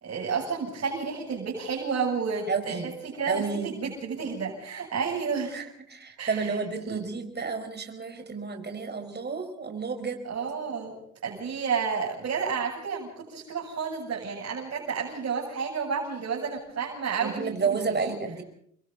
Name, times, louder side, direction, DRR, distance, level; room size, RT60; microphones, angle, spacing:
voice 1, 0.0-5.7 6.2-6.6 6.9-7.0 10.2-10.9 11.2-17.5 17.9-18.2, right 5 dB, 50° right, -3 dB, 7.7 m, -31 dB
voice 2, 2.5-2.9 3.3-3.8 5.5-5.6 5.9-10.2 17.2-18.4, right 5 dB, 35° right, 5 dB, 5.3 m, -31 dB
29.5 x 23.0 x 4.1 m, 0.66 s
cardioid pair, 90°, 30 cm